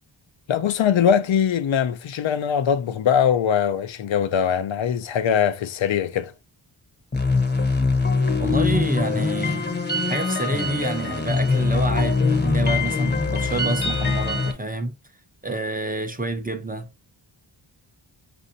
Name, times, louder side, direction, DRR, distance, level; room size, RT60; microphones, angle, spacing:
voice 1, 0.5-6.3, left 8 dB, 70° left, 0.6 m, -21 dB
sound 1, 7.1-14.5, left 3 dB, 20° left, 0.8 m, -22 dB
voice 2, 8.4-9.7 10.1-14.9 15.4-16.9, right 2 dB, 20° right, 0.6 m, -28 dB
5.3 x 2.6 x 2.7 m
wide cardioid pair, 75°, 48 cm